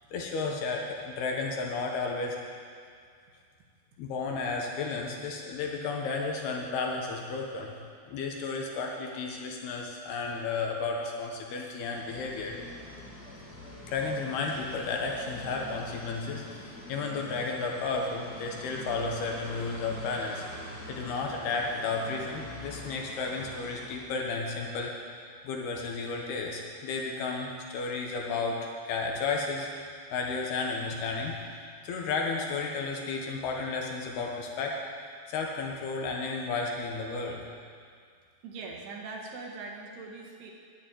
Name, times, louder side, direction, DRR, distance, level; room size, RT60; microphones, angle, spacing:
voice 1, 0.1-2.4 4.0-7.8 8.1-12.6 13.9-20.4 20.9-24.9 25.4-31.4 31.8-34.8 35.3-37.4, left 4 dB, 70° left, 0 dB, 3.1 m, -33 dB
sound 1, 11.9-23.9, left 1 dB, 30° left, 2.0 m, -44 dB
voice 2, 38.4-40.5, right 3 dB, 70° right, -1 dB, 3.6 m, -41 dB
11.0 x 9.4 x 9.1 m, 2.2 s
omnidirectional pair, 5.0 m